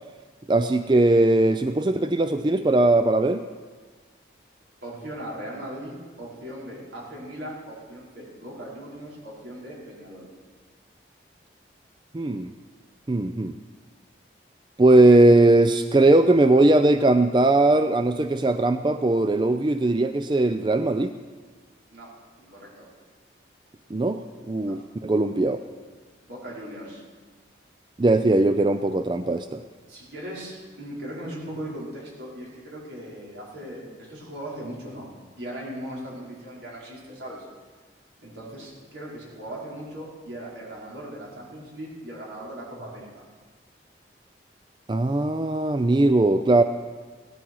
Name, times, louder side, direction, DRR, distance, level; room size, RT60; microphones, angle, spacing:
voice 1, 0.5-3.4 12.1-12.5 13.1-13.6 14.8-21.1 23.9-24.2 24.5-25.6 28.0-29.6 44.9-46.6, right 2 dB, 25° right, 9 dB, 0.4 m, -19 dB
voice 2, 4.8-10.3 21.9-22.1 22.4-22.9 24.6-24.7 26.2-27.0 29.9-35.1 35.4-37.5 38.2-43.2, right 1 dB, 80° right, -5 dB, 5.3 m, -38 dB
17.5 x 12.5 x 4.7 m, 1.4 s
head